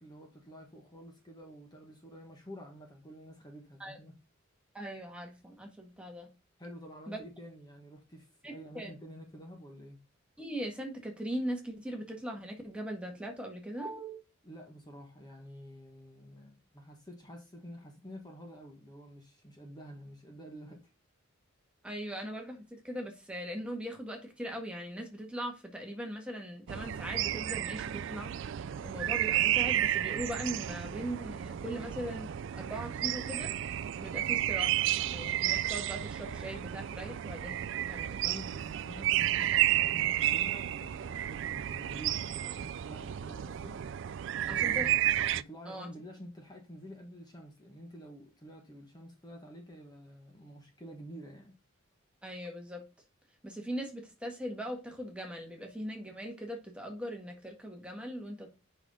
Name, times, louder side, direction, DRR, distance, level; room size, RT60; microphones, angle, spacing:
voice 1, 0.0-4.2 6.6-10.0 14.4-20.9 38.2-43.8 44.4-45.0 45.3-51.6, equal, 20° left, 1.3 m, -49 dB
voice 2, 4.7-6.3 7.1-7.2 8.4-8.9 10.4-14.2 21.8-33.5 34.0-38.2 44.5-44.9 45.7-45.9 52.2-52.8 53.4-58.5, equal, 5° right, 1.6 m, -40 dB
sound 1, 26.7-45.4, right 12 dB, 60° right, 0.3 m, -32 dB
6.3 x 5.7 x 4.9 m
head